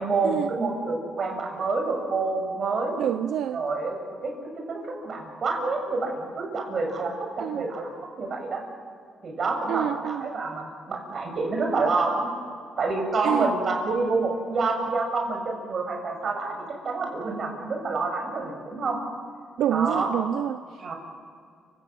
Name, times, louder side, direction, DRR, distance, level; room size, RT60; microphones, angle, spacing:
voice 1, 0.0-2.9 3.5-4.3 4.7-8.6 9.2-12.3 12.8-19.0 19.7-20.2 20.8-20.9, right 3 dB, 50° right, 3 dB, 6.9 m, -28 dB
voice 2, 3.0-3.6 7.4-7.6 9.7-10.3 13.2-13.5 19.6-20.6, right 10 dB, 80° right, 12 dB, 0.6 m, -27 dB
29.5 x 18.5 x 7.8 m, 2.2 s
cardioid pair, 90°, 0 cm